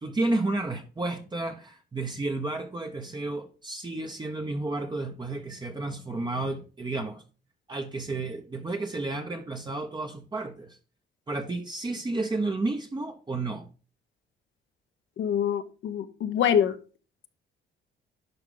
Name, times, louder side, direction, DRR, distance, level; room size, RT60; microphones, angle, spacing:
voice 1, 0.0-7.2 7.7-10.8 11.3-13.7, right 2 dB, 20° right, 1.0 m, -31 dB
voice 2, 15.2-16.8, left 9 dB, 75° left, 1.1 m, -25 dB
11.0 x 4.8 x 3.9 m
cardioid pair, 90°, 20 cm